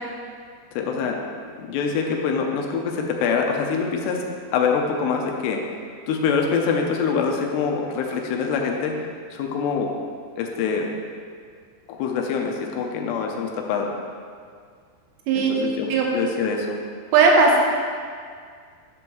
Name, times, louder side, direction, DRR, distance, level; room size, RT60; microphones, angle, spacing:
voice 1, 0.8-1.3 1.6-4.3 4.5-5.7 6.1-9.1 9.3-10.0 10.4-11.0 11.9-14.0 15.3-16.8, left 5 dB, 90° left, 1 dB, 2.8 m, -25 dB
voice 2, 17.1-17.6, right 4 dB, 80° right, -1 dB, 3.1 m, -16 dB
11.0 x 7.0 x 3.1 m, 2.1 s
omnidirectional pair, 4.9 m